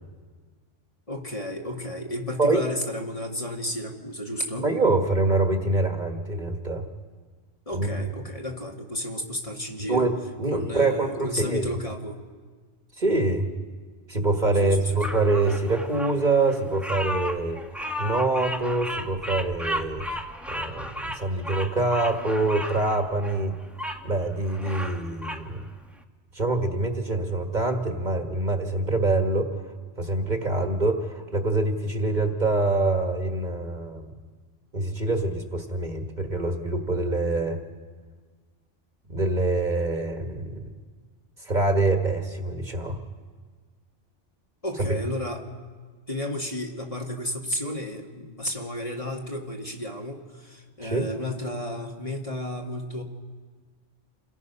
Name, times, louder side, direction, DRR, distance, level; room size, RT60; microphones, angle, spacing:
voice 1, 1.1-4.7 7.7-10.1 10.5-12.2 14.6-14.9 44.6-45.5 46.1-53.0, left 1 dB, 30° left, 1 dB, 1.6 m, -32 dB
voice 2, 4.6-6.9 7.7-8.0 9.9-11.7 13.0-13.5 14.1-17.6 18.0-20.0 20.5-23.5 24.0-25.7 26.3-29.6 30.0-34.1 34.7-37.6 39.1-40.7 41.4-43.0 44.9-45.0 50.8-51.1, right 2 dB, 40° right, 5 dB, 1.5 m, -25 dB
Bird vocalization bird call bird song, 15.0-24.0 24.4-25.5, equal, ahead, 0.8 m, -34 dB
28.0 x 18.0 x 5.5 m, 1.5 s
omnidirectional pair, 1.2 m